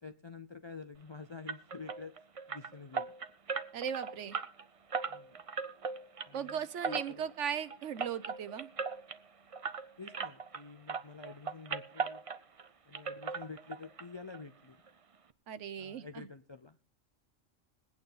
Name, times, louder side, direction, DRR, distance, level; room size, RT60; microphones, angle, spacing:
voice 1, 0.0-2.2 2.5-3.1 5.1-5.3 6.3-7.3 10.0-12.2 12.9-14.8 15.8-16.8, left 4 dB, 45° left, 9 dB, 0.3 m, -48 dB
sound 1, 1.5-10.6 10.9-12.7 12.9-14.0 14.3-14.4 14.9-15.0 15.3-15.4, right 5 dB, 35° right, 0.6 m, -39 dB
voice 2, 3.7-4.4 6.3-8.7 15.5-16.3, right 8 dB, 70° right, 14 dB, 1.1 m, -37 dB
21.5 x 9.0 x 3.8 m, 0.41 s
omnidirectional pair, 1.3 m